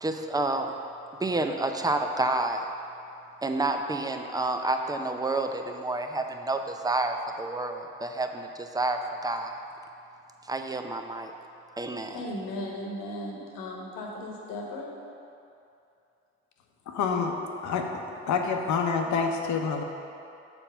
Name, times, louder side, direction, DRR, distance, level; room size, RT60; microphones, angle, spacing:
voice 1, 0.0-0.7 1.2-2.7 3.4-9.6 10.5-11.3 11.8-12.2, right 2 dB, 10° right, 5 dB, 0.6 m, -29 dB
voice 2, 12.1-14.9, left 1 dB, 75° left, -1 dB, 1.3 m, -36 dB
voice 3, 16.9-17.3 17.6-17.9 18.3-19.8, left 5 dB, 60° left, 3 dB, 0.9 m, -27 dB
7.0 x 4.3 x 5.6 m, 2.6 s
hypercardioid pair, 55°, 33 cm